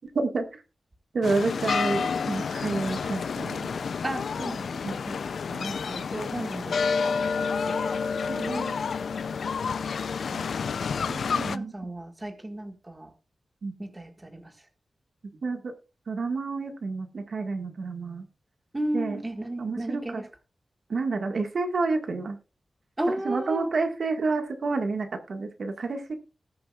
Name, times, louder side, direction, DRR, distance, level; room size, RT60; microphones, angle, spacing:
voice 1, 0.2-0.6 1.1-3.8 4.8-5.0 8.3-8.8 11.4-11.7 13.6-13.7 15.4-15.7 16.1-18.3 18.9-19.2 19.6-20.2 20.9-22.4 23.1-26.2, right 3 dB, 65° right, 1.7 m, -29 dB
sound 1, 1.2-11.6, left 5 dB, 85° left, 0.5 m, -29 dB
voice 2, 4.0-5.2 5.5-7.9 10.0-10.6 11.1-13.1 13.8-14.5 18.7-20.3 23.0-23.7, right 1 dB, 20° right, 1.7 m, -34 dB
19.5 x 7.7 x 2.4 m
wide cardioid pair, 140°, 0 cm